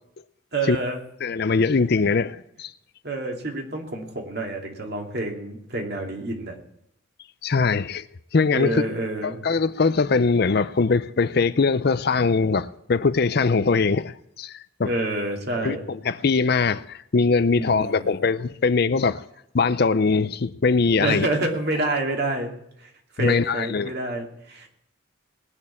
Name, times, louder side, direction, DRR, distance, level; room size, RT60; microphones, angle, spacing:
voice 1, 0.5-1.0 3.0-6.6 8.5-9.4 14.8-15.8 17.6-18.1 21.0-22.5 22.8-22.9 23.2-24.7, right 2 dB, 50° right, 2.6 m, -28 dB
voice 2, 1.2-2.7 7.4-8.0 8.3-8.8 9.2-14.9 15.6-19.2 19.5-21.3 23.2-23.9, left 4 dB, 50° left, 0.5 m, -22 dB
19.5 x 6.6 x 8.5 m
head